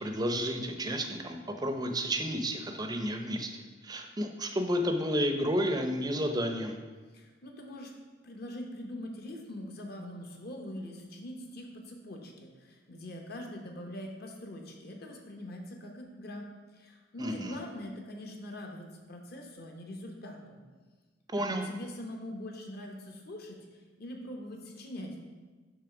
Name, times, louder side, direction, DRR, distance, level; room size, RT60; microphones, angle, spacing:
voice 1, 0.0-6.8 17.2-17.6 21.3-21.6, equal, 20° right, 5 dB, 0.5 m, -31 dB
voice 2, 7.1-7.9 8.2-16.4 16.7-20.6 21.4-23.6 24.0-25.2, left 1 dB, 50° left, 2 dB, 0.9 m, -43 dB
6.8 x 3.2 x 5.9 m, 1.4 s
head